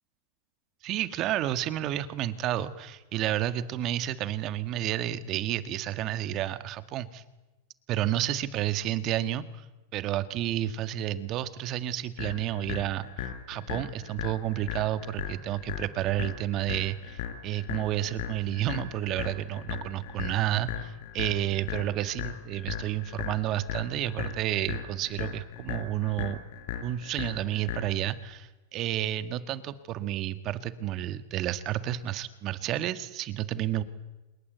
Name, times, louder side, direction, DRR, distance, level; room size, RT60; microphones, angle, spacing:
voice 1, 0.8-7.2 7.9-9.6 9.9-26.4 26.8-33.8, right 12 dB, 45° right, 12 dB, 1.8 m, -31 dB
sound 1, 12.2-28.2, left 10 dB, 65° left, 4.4 m, -38 dB
27.0 x 22.0 x 8.2 m, 1.1 s
hypercardioid pair, 120°, 0 cm